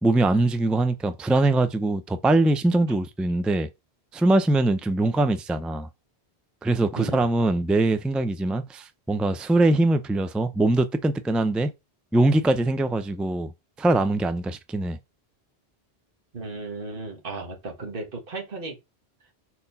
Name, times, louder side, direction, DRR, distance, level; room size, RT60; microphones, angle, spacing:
voice 1, 0.0-3.7 4.1-5.9 6.6-11.7 12.1-13.5 13.8-15.0, right 2 dB, ahead, 0.3 m, -22 dB
voice 2, 6.9-7.3 16.3-18.8, right 3 dB, 60° right, 1.7 m, -35 dB
4.5 x 4.2 x 5.4 m
omnidirectional pair, 1.1 m